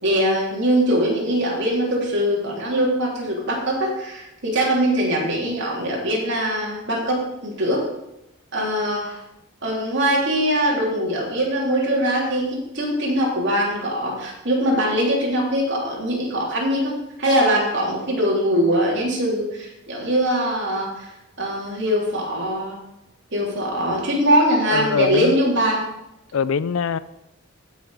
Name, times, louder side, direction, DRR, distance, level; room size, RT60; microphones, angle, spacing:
voice 1, 0.0-7.8 8.5-9.2 9.6-16.9 17.2-21.1 21.4-22.8 23.3-25.9, equal, 55° right, 3.4 m, -22 dB
voice 2, 24.7-25.3 26.3-27.0, left 6 dB, 75° left, 0.5 m, -22 dB
15.5 x 6.4 x 5.0 m
head